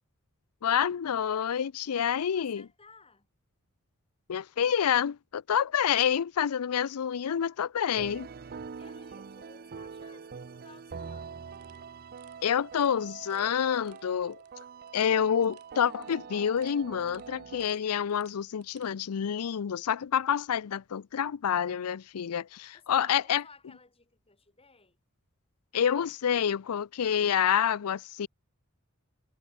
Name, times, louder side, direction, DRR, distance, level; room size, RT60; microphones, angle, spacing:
voice 1, 0.6-2.7 4.3-8.3 12.4-14.4 14.9-23.4 25.7-28.3, left 8 dB, 80° left, 0.5 m, -28 dB
voice 2, 2.1-3.3 8.7-11.5 22.7-25.0, left 4 dB, 25° left, 7.9 m, -57 dB
sound 1, 8.0-17.7, right 5 dB, 45° right, 0.5 m, -44 dB
sound 2, 11.5-18.9, right 12 dB, 85° right, 4.0 m, -66 dB
head